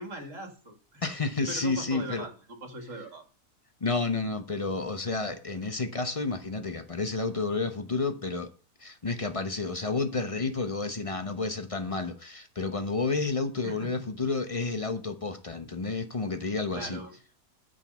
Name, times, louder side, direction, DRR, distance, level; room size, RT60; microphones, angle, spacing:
voice 1, 0.0-1.0 1.5-2.3 2.6-3.2 13.6-13.9 16.7-17.2, right 1 dB, 55° right, 2.5 m, -40 dB
voice 2, 1.0-2.3 3.8-8.5 8.8-17.0, left 3 dB, 30° left, 0.7 m, -30 dB
9.2 x 5.4 x 6.8 m
omnidirectional pair, 1.6 m